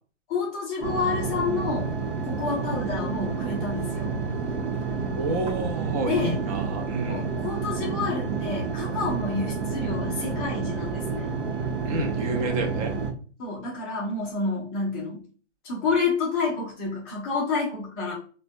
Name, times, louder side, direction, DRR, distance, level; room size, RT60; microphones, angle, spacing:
voice 1, 0.3-2.0 2.3-4.1 6.0-6.4 7.1-11.3 13.4-15.2 15.6-18.1, left 4 dB, 10° left, -4 dB, 0.3 m, -29 dB
sound 1, 0.8-13.1, right 5 dB, 70° right, 0.8 m, -29 dB
voice 2, 5.2-7.3 11.8-13.0, right 2 dB, 30° right, 3 dB, 0.6 m, -29 dB
3.4 x 2.1 x 2.5 m, 0.39 s
hypercardioid pair, 140°, 36 cm